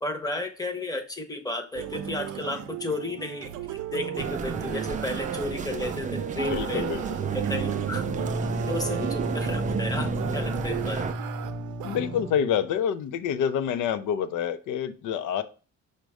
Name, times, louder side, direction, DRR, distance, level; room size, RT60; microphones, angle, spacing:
voice 1, 0.0-3.5 3.9-6.8 7.3-8.1 8.7-11.1, left 2 dB, 10° left, 5 dB, 0.8 m, -33 dB
sound 1, 1.7-12.4, right 10 dB, 80° right, 0.5 m, -36 dB
sound 2, 4.2-11.1, right 6 dB, 25° right, 0.4 m, -33 dB
voice 2, 6.4-7.2 11.8-15.4, left 8 dB, 80° left, 11 dB, 0.5 m, -27 dB
sound 3, 7.1-12.6, right 2 dB, 55° right, 0.8 m, -32 dB
5.1 x 2.2 x 4.7 m, 0.36 s
cardioid pair, 90°, 30 cm